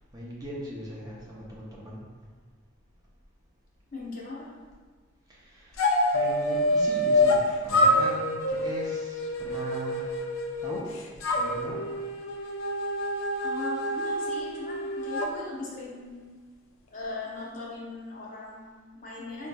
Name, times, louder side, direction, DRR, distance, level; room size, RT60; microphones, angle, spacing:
voice 1, 0.1-2.1 5.3-10.2 10.6-10.9 11.3-11.8, equal, 20° right, -5 dB, 0.5 m, -39 dB
voice 2, 3.9-4.5 13.4-16.3 16.9-19.5, left 3 dB, 40° left, -5 dB, 0.7 m, -39 dB
sound 1, 5.8-7.4 7.7-10.8 11.2-15.3, left 1 dB, 80° left, 0.4 m, -26 dB
4.3 x 2.7 x 2.2 m, 1.5 s
head